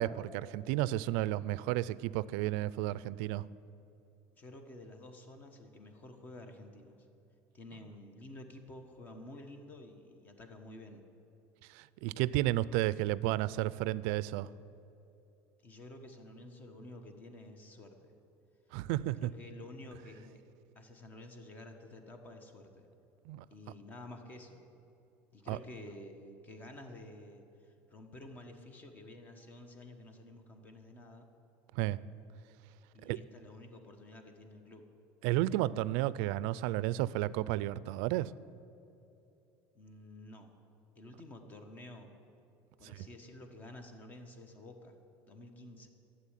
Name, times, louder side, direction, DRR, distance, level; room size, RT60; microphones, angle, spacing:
voice 1, 0.0-3.4 11.7-14.5 18.7-19.3 23.3-23.4 25.5-25.6 31.7-32.0 33.0-33.2 35.2-38.3, right 15 dB, 75° right, 19 dB, 0.4 m, -32 dB
voice 2, 4.3-6.9 7.5-11.0 15.6-18.1 19.1-20.4 20.7-22.9 23.5-24.6 25.3-31.3 32.9-34.8 39.7-40.5 40.9-42.1 42.8-45.0 45.2-45.9, left 1 dB, 25° left, 6 dB, 1.3 m, -51 dB
12.0 x 7.7 x 10.0 m, 2.8 s
cardioid pair, 150°, 6 cm